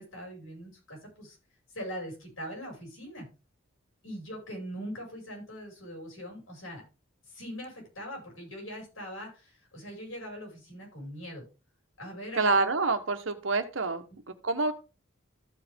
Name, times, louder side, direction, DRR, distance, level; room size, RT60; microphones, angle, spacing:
voice 1, 0.0-1.4 1.7-3.3 4.0-6.8 7.3-11.4 12.0-12.6, equal, 85° left, 0 dB, 5.9 m, -41 dB
voice 2, 12.4-14.7, right 3 dB, 70° right, 8 dB, 1.1 m, -27 dB
14.0 x 5.1 x 3.6 m, 0.31 s
head